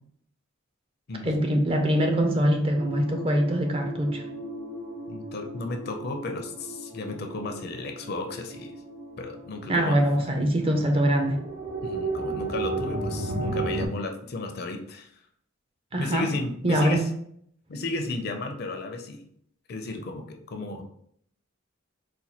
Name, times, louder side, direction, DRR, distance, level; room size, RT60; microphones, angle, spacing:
voice 1, 1.2-4.2 9.7-11.4 15.9-16.3 16.6-17.0, equal, 25° right, 4 dB, 0.4 m, -23 dB
sound 1, 2.7-13.9, right 2 dB, 85° right, 1.2 m, -35 dB
voice 2, 5.1-8.7 9.2-10.0 11.8-15.1 16.0-17.0 17.7-19.2 19.7-20.8, left 2 dB, 50° left, 4 dB, 0.5 m, -34 dB
4.1 x 2.2 x 2.8 m, 0.67 s
head